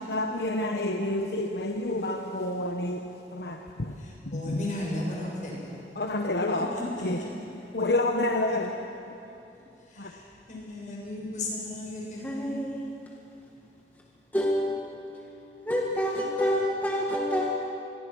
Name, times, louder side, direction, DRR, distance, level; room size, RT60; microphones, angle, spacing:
voice 1, 0.0-3.9 4.3-4.7 6.0-9.2 10.0-10.1, left 2 dB, 70° left, 1.2 m, -29 dB
voice 2, 4.3-5.5 7.1-7.2 10.5-12.6, left 2 dB, 45° left, 6.9 m, -34 dB
voice 3, 12.2-12.8 14.3-15.1 15.7-17.5, equal, 10° left, 1.8 m, -27 dB
26.0 x 21.5 x 6.3 m
head